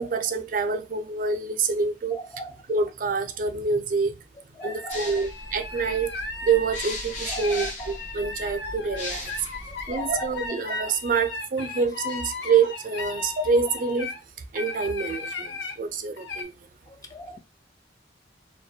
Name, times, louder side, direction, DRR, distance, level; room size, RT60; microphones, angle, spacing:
voice 1, 0.0-2.2 2.7-4.1 4.6-6.1 6.4-9.3 9.9-14.1 14.5-16.5, right 5 dB, 50° right, 0.4 m, -26 dB
sound 1, 4.6-14.2 14.6-15.8 16.2-16.4, left 4 dB, 75° left, 0.6 m, -36 dB
voice 2, 4.6-5.3 7.3-7.7 9.9-10.3 17.1-17.4, right 1 dB, 20° left, 0.4 m, -37 dB
sound 2, 4.9-10.5, left 2 dB, 45° left, 0.8 m, -38 dB
2.3 x 2.1 x 2.6 m
head